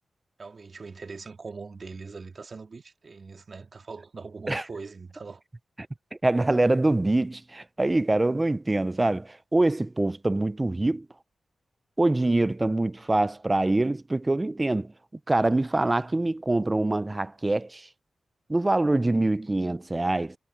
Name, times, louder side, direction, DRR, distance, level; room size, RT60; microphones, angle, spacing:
voice 1, 0.4-5.4, right 4 dB, 50° right, 2.2 m, -41 dB
voice 2, 6.2-11.1 12.0-14.9 15.3-17.9 18.5-20.4, right 2 dB, 20° right, 0.5 m, -24 dB
cardioid pair, 75°, 0 cm